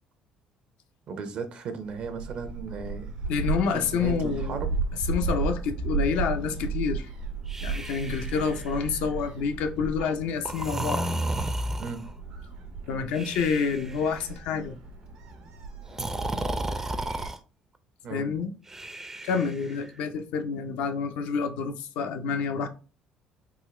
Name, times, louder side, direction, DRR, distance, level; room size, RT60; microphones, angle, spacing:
voice 1, 1.1-3.1 3.7-4.7 11.8-12.0 18.0-18.3, right 5 dB, 60° right, 0.7 m, -36 dB
Gull seagull, 1.8-17.3, right 4 dB, 80° right, 1.0 m, -34 dB
voice 2, 3.3-4.6 5.1-7.1 7.6-11.0 12.9-14.8 18.1-18.5 19.2-22.7, left 6 dB, 75° left, 0.5 m, -28 dB
Breathing, 7.5-9.0 10.4-12.1 13.1-14.1 15.9-17.4 18.7-19.9, right 1 dB, 20° right, 0.4 m, -33 dB
3.7 x 2.3 x 3.2 m
supercardioid pair, 70°, 2 cm